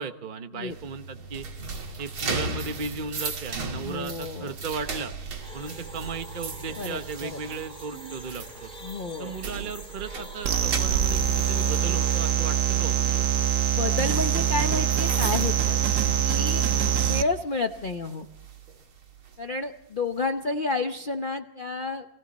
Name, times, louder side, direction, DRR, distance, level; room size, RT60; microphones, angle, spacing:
voice 1, 0.0-1.5 2.0-5.1 5.5-8.7 9.2-13.3 16.6-16.8, right 5 dB, 35° right, 7 dB, 0.8 m, -36 dB
sound 1, 0.7-16.6 17.0-17.2 17.7-19.4, right 4 dB, 80° right, 3.3 m, -36 dB
voice 2, 3.8-4.5 6.8-7.4 8.8-9.3 13.7-15.8 16.2-16.7 17.0-18.3 19.4-22.1, left 3 dB, 60° left, 6 dB, 0.5 m, -30 dB
sound 2, 5.4-12.3, equal, ahead, 2.9 m, -45 dB
sound 3, 10.4-17.2, right 9 dB, 60° right, 1.4 m, -24 dB
29.5 x 21.5 x 4.2 m, 0.86 s
omnidirectional pair, 2.2 m